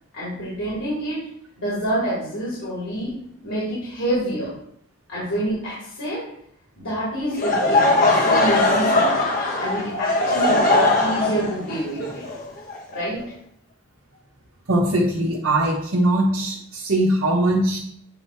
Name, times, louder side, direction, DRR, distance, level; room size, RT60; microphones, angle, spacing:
voice 1, 0.1-1.2 1.6-3.1 3.4-4.5 5.1-6.2 6.8-9.3 9.6-12.2 12.9-13.2, equal, 70° left, -10 dB, 2.8 m, -27 dB
Laughter / Crowd, 7.3-13.2, left 2 dB, 40° left, 1.1 m, -20 dB
voice 2, 14.7-17.8, right 1 dB, 75° right, -2 dB, 1.1 m, -21 dB
8.8 x 3.1 x 4.5 m, 0.68 s
head